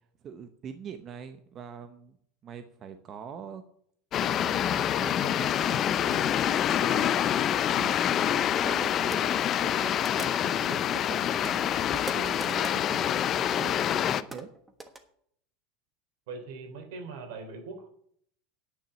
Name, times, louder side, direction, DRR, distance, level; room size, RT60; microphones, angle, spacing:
voice 1, 0.2-2.2 2.4-3.6 4.2-7.1 7.3-13.8 14.1-14.5, right 7 dB, 35° right, 8 dB, 0.8 m, -43 dB
sound 1, 4.1-14.2, left 10 dB, 35° left, 0.5 m, -26 dB
sound 2, 8.8-8.9 9.1-9.2 10.0-10.6 10.9-12.9 13.6-15.0, right 2 dB, 10° right, 1.3 m, -42 dB
voice 2, 16.3-17.9, right 4 dB, 75° right, 6 dB, 3.1 m, -41 dB
10.0 x 6.1 x 7.9 m, 0.66 s
supercardioid pair, 135°, 0 cm